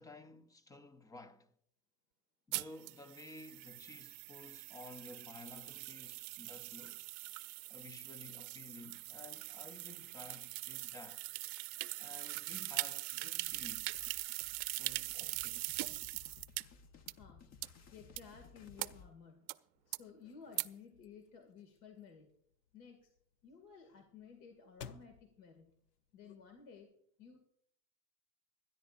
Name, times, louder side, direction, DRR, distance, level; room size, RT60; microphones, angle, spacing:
voice 1, 0.0-1.5 2.5-7.0 7.7-11.2 12.0-14.1 14.8-15.8, left 2 dB, 10° left, 0.4 m, -54 dB
sound 1, 2.5-16.6 17.1-17.2 17.6-17.7 18.2-18.3 18.8-18.9 19.5-19.6 19.9-20.0 20.6-20.7, right 23 dB, 65° right, 0.7 m, -42 dB
sound 2, 13.5-19.1, left 5 dB, 35° left, 1.0 m, -59 dB
voice 2, 17.1-17.6 17.9-19.5 19.9-22.3 22.7-23.1 23.4-25.8 26.1-26.9 27.2-27.4, left 6 dB, 65° left, 2.3 m, -55 dB
sound 3, 19.7-26.8, left 7 dB, 85° left, 0.9 m, -59 dB
24.5 x 10.5 x 2.5 m
supercardioid pair, 125°, 47 cm